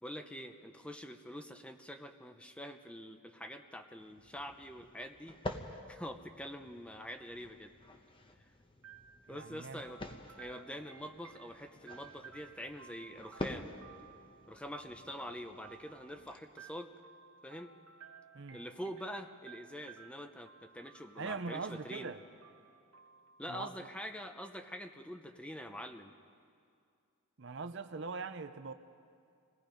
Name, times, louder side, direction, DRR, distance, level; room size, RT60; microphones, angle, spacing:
voice 1, 0.0-7.7 9.3-10.0 10.4-13.7 14.5-16.9 17.4-17.7 18.5-22.1 23.4-26.1, equal, 5° left, 6 dB, 0.7 m, -45 dB
sound 1, 4.0-16.4, left 1 dB, 25° left, 1.0 m, -48 dB
sound 2, 8.8-24.6, right 6 dB, 85° right, 1.1 m, -57 dB
voice 2, 9.3-9.8 18.3-18.6 21.2-22.2 23.5-23.9 27.4-28.7, right 4 dB, 55° right, 10 dB, 0.7 m, -42 dB
27.5 x 18.5 x 5.2 m, 2.4 s
head